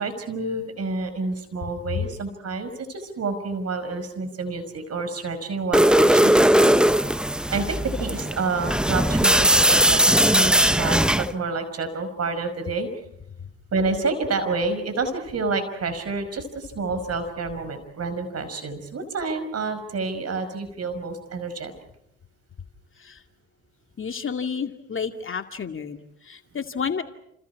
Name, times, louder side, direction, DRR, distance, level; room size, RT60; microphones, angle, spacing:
voice 1, 0.0-6.8 7.5-12.9 13.7-21.7, right 3 dB, 50° right, 10 dB, 5.4 m, -29 dB
sound 1, 5.7-11.3, equal, 5° right, 0.9 m, -19 dB
voice 2, 24.0-27.0, left 6 dB, 40° left, 6 dB, 2.3 m, -30 dB
30.0 x 29.0 x 4.8 m, 0.76 s
hypercardioid pair, 55°, 33 cm